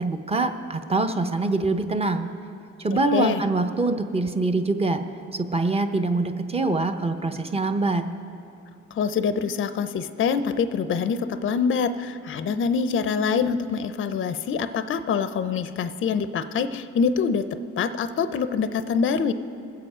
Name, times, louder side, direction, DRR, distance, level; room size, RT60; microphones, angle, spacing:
voice 1, 0.0-2.3 2.8-5.0 5.3-8.1, right 3 dB, 20° right, 7 dB, 0.7 m, -24 dB
voice 2, 8.9-17.5 17.8-19.3, left 6 dB, 40° left, 11 dB, 0.5 m, -25 dB
20.5 x 7.7 x 4.9 m, 2.7 s
cardioid pair, 90°, 30 cm